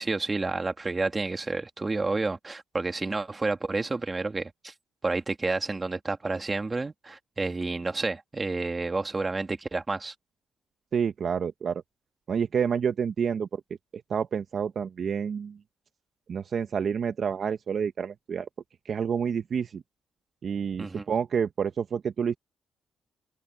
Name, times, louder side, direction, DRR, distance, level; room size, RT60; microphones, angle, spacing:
voice 1, 0.0-4.7 5.0-10.1 20.8-21.1, right 3 dB, 25° right, 2.5 m, -30 dB
voice 2, 10.9-11.8 12.3-13.6 14.1-15.6 16.3-18.5 18.9-19.8 20.4-22.4, right 7 dB, 50° right, 1.2 m, -28 dB
cardioid pair, 90°, 0 cm